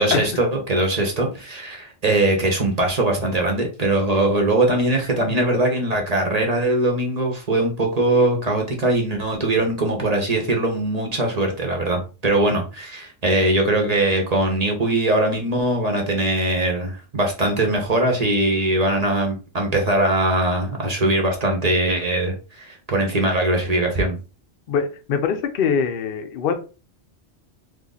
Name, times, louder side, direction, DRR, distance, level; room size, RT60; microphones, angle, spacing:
voice 1, 0.0-24.2, right 1 dB, 40° right, 2 dB, 0.8 m, -21 dB
voice 2, 24.7-26.5, left 6 dB, 60° left, 6 dB, 0.7 m, -23 dB
2.9 x 2.5 x 3.8 m, 0.34 s
omnidirectional pair, 1.1 m